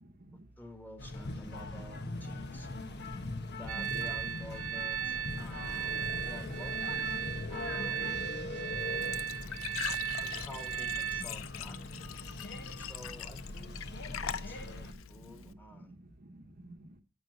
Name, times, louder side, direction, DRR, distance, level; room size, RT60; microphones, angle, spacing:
voice 1, 0.0-0.5 3.0-3.1 7.3-7.4 8.5-9.2 11.2-11.3 14.0-14.3 14.9-15.0 15.2-15.5 15.7-17.0, right 1 dB, 45° right, 5 dB, 1.1 m, -53 dB
voice 2, 0.6-2.7 3.5-6.8 7.5-8.6 10.2-11.8 12.8-13.8 14.1-15.9, equal, 10° left, 5 dB, 1.7 m, -50 dB
sound 1, 1.0-14.9, left 2 dB, 55° left, 1.4 m, -41 dB
sound 2, 3.7-11.2, right 9 dB, 90° right, 1.7 m, -36 dB
Glass / Trickle dribble / Fill (with liquid), 8.8-15.5, left 9 dB, 75° left, 0.6 m, -42 dB
10.5 x 8.5 x 4.1 m, 0.31 s
head